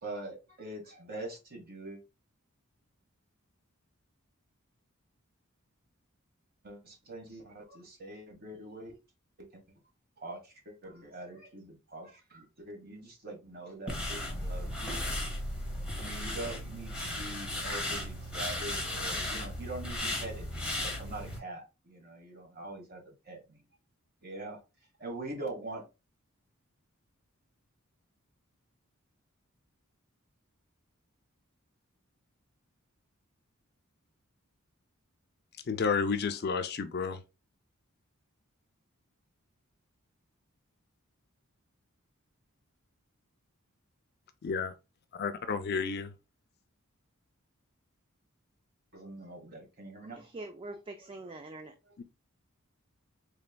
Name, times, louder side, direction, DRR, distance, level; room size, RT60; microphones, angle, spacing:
voice 1, 0.0-2.0 6.6-9.0 10.2-15.0 15.7-23.0 23.3-23.6 24.2-24.6 25.0-25.8 48.9-50.2 51.9-52.0, right 2 dB, 45° right, 1.2 m, -43 dB
sound 1, 13.9-21.4, left 1 dB, 5° right, 1.1 m, -35 dB
voice 2, 35.7-37.2 44.4-44.7 45.2-46.1 52.0-52.1, left 5 dB, 50° left, 0.4 m, -31 dB
voice 3, 50.0-51.7, right 2 dB, 25° right, 0.3 m, -44 dB
4.2 x 3.3 x 2.2 m
head